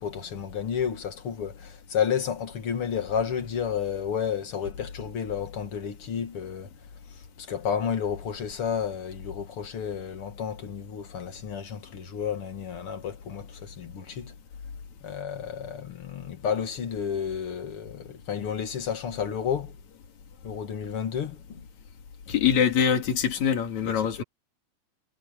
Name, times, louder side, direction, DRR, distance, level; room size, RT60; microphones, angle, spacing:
voice 1, 0.0-6.7 7.1-14.3 15.0-19.8 20.4-21.7 23.8-24.2, left 7 dB, 50° left, 2.6 m, -31 dB
voice 2, 22.3-24.2, left 8 dB, 70° left, 4.0 m, -24 dB
omnidirectional pair, 3.4 m